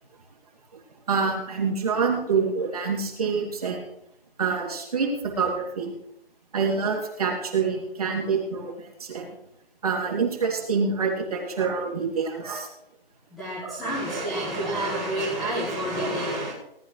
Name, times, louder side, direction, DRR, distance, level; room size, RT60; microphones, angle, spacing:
voice 1, 1.1-3.8 4.4-5.9 6.5-9.3 9.8-12.7 13.6-13.9, right 5 dB, 40° right, 0 dB, 2.9 m, -26 dB
voice 2, 13.3-16.5, right 1 dB, ahead, -14 dB, 1.7 m, -29 dB
18.5 x 11.5 x 3.3 m, 0.78 s
hypercardioid pair, 175°, 30 cm